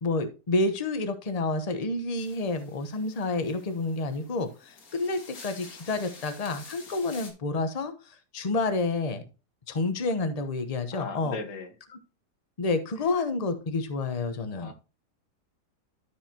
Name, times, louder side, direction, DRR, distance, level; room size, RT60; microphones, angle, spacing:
voice 1, 0.0-9.2 9.7-11.4 12.6-14.7, left 3 dB, 30° left, 9 dB, 0.9 m, -29 dB
sound 1, 2.2-7.3, left 4 dB, 60° left, 2.0 m, -49 dB
voice 2, 10.9-11.7 14.5-14.7, left 4 dB, 85° left, 7 dB, 1.8 m, -37 dB
12.5 x 4.8 x 2.8 m, 0.31 s
omnidirectional pair, 1.8 m